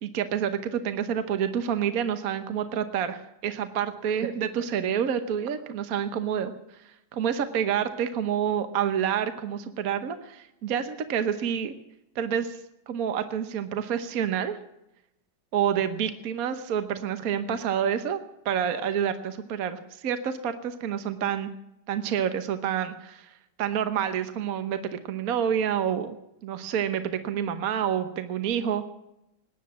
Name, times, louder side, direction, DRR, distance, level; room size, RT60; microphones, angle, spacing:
voice 1, 0.0-6.5 7.1-11.7 12.1-12.6 12.9-14.6 15.5-21.5 21.9-26.2 26.4-28.9, right 8 dB, 55° right, 9 dB, 1.4 m, -28 dB
19.0 x 10.0 x 7.4 m, 0.85 s
omnidirectional pair, 1.9 m